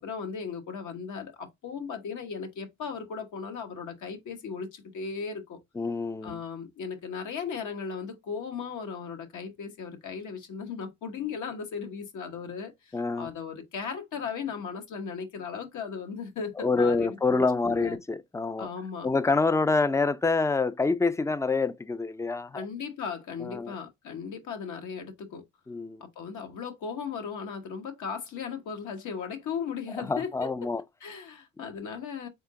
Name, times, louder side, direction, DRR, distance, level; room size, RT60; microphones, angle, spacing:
voice 1, 0.0-5.6 6.2-18.0 18.6-19.1 22.5-25.4 26.0-30.7 31.0-32.3, left 6 dB, 75° left, 1.2 m, -37 dB
voice 2, 5.8-6.4 12.9-13.3 16.6-18.7 19.0-22.7 23.4-23.7 25.7-26.0 30.0-30.8, left 3 dB, 10° left, 0.4 m, -27 dB
3.7 x 3.5 x 3.6 m
cardioid pair, 90°, 30 cm